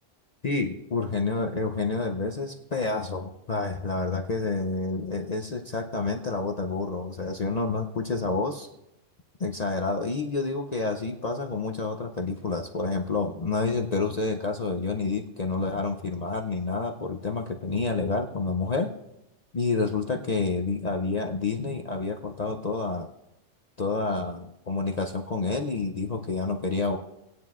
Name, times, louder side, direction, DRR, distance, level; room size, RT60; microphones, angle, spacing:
voice 1, 0.4-8.7 9.4-18.9 19.5-23.1 23.8-27.0, left 3 dB, 45° left, 2 dB, 0.6 m, -29 dB
19.5 x 9.4 x 2.4 m, 0.89 s
omnidirectional pair, 1.2 m